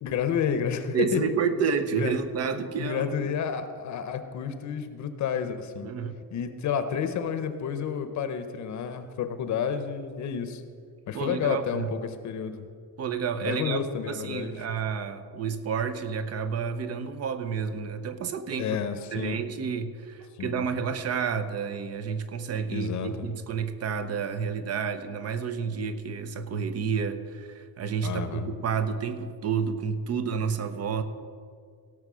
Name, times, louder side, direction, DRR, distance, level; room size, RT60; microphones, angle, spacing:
voice 1, 0.0-1.2 1.9-2.1 2.8-5.9 6.3-10.6 11.1-12.6 13.4-14.6 18.6-19.4 20.4-20.7 22.7-23.3 28.0-28.5, left 7 dB, 50° left, 9 dB, 0.9 m, -30 dB
voice 2, 0.9-3.3 5.8-6.2 11.1-11.9 13.0-13.8 14.1-18.8 19.1-31.0, right 6 dB, 40° right, 10 dB, 0.8 m, -30 dB
17.0 x 6.3 x 6.2 m, 2.1 s
cardioid pair, 150°, 37 cm